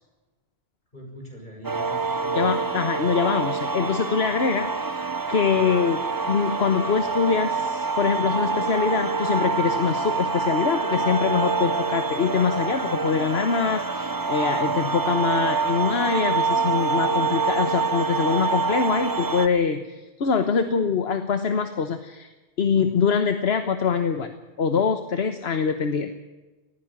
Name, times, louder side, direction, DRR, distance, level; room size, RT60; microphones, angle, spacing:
voice 1, 0.9-2.6 5.5-5.6, right 1 dB, 45° left, 1 dB, 6.8 m, -41 dB
sound 1, 1.6-19.5, right 4 dB, 20° right, 0.8 m, -26 dB
voice 2, 2.3-5.0 5.3-6.0 6.3-19.8 20.2-22.3 22.6-26.1, left 6 dB, 75° left, 8 dB, 1.4 m, -24 dB
19.5 x 15.5 x 8.9 m, 1.1 s
omnidirectional pair, 1.1 m